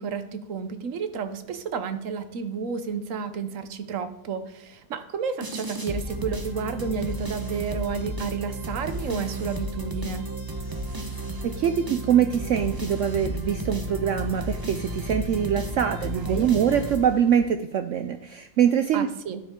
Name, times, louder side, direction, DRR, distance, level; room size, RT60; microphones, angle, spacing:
voice 1, 0.0-10.3 16.2-16.5 18.9-19.4, right 6 dB, 55° right, 10 dB, 1.0 m, -31 dB
sound 1, 5.4-17.5, right 1 dB, 20° right, 0.5 m, -33 dB
voice 2, 11.4-19.1, right 8 dB, 85° right, 9 dB, 0.6 m, -23 dB
12.5 x 9.7 x 3.7 m, 0.83 s
omnidirectional pair, 1.8 m